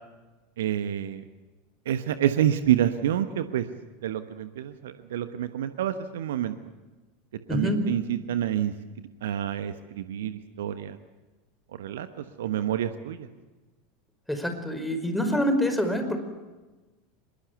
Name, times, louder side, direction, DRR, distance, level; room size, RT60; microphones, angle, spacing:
voice 1, 0.6-1.2 1.9-3.7 4.0-6.5 7.5-8.7 9.2-11.0 11.8-13.3, right 11 dB, 65° right, 10 dB, 1.2 m, -28 dB
voice 2, 7.5-7.8 14.3-16.2, left 1 dB, 5° left, 7 dB, 5.1 m, -26 dB
25.0 x 22.0 x 8.2 m, 1.2 s
figure-of-eight pair, 80°, 0 cm